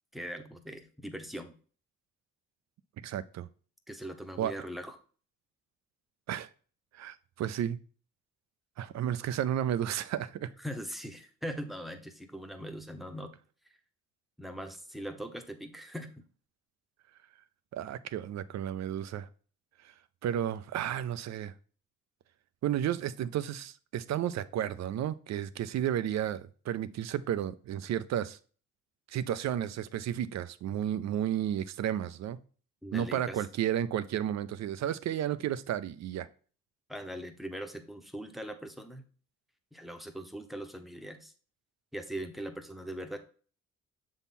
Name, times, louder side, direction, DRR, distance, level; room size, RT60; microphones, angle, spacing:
voice 1, 0.1-1.5 3.9-5.0 10.6-13.3 14.4-16.1 32.8-33.4 36.9-39.0 39.7-41.3 41.9-43.2, equal, ahead, 0.9 m, -41 dB
voice 2, 3.0-3.5 4.4-4.5 6.3-6.5 6.9-7.8 8.8-10.5 17.7-19.3 20.2-21.5 22.6-28.4 29.1-32.4 32.9-36.3, right 10 dB, 65° right, 0.5 m, -32 dB
7.0 x 3.7 x 4.2 m
cardioid pair, 90°, 30 cm